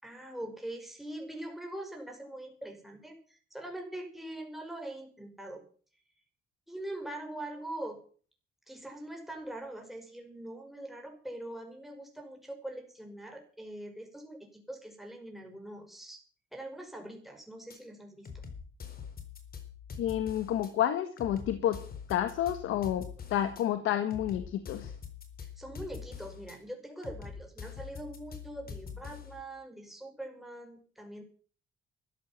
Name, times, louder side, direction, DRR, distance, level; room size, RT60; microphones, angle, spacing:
voice 1, 0.0-5.6 6.7-8.0 8.7-16.2 16.5-18.3 25.4-31.2, right 1 dB, ahead, 3 dB, 5.6 m, -43 dB
sound 1, 17.7-17.8 18.3-20.7 21.2-23.6 24.1-26.6 27.0-29.4, left 6 dB, 50° left, 4.2 m, -44 dB
voice 2, 20.0-21.8 22.1-24.9, left 11 dB, 90° left, 9 dB, 1.5 m, -30 dB
14.5 x 10.5 x 7.4 m, 0.43 s
cardioid pair, 90°, 20 cm